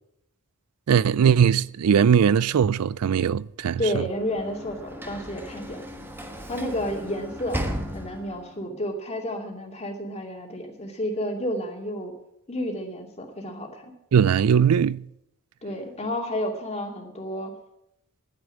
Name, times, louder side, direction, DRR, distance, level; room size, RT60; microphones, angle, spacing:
voice 1, 0.9-3.8 14.1-15.0, right 7 dB, 80° right, 0.4 m, -20 dB
voice 2, 3.8-5.8 6.5-7.7 7.9-12.1 12.5-13.9 15.6-17.5, equal, 30° left, 2.5 m, -31 dB
Sliding door / Slam, 3.9-8.6, equal, 10° right, 1.4 m, -36 dB
11.0 x 9.8 x 8.5 m
head